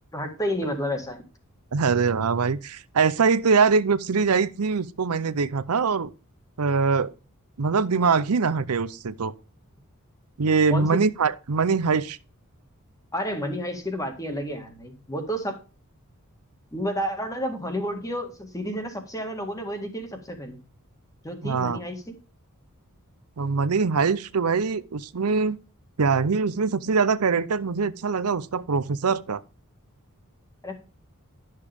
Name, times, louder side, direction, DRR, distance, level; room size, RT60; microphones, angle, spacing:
voice 1, 0.1-1.2 10.7-11.0 13.1-15.5 16.7-20.6 21.2-22.1 30.6-30.7, equal, 15° left, 1.9 m, -30 dB
voice 2, 1.7-6.1 6.6-7.1 7.6-9.3 10.4-12.2 21.4-21.8 23.4-25.6 26.0-29.4, right 5 dB, 85° right, 0.6 m, -23 dB
12.0 x 6.6 x 3.5 m
head